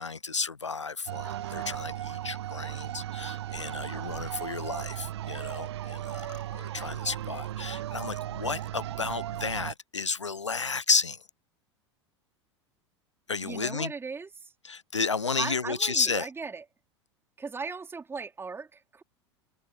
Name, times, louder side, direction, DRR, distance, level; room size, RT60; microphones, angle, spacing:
voice 1, 0.0-11.2 13.3-13.9 14.6-16.3, left 4 dB, 90° left, 0.4 m, -32 dB
sound 1, 1.1-9.7, right 13 dB, 65° right, 0.7 m, -36 dB
voice 2, 3.9-4.2 13.4-14.5 15.4-16.6 17.4-19.0, right 4 dB, 15° right, 4.3 m, -38 dB
figure-of-eight pair, 80°, 15 cm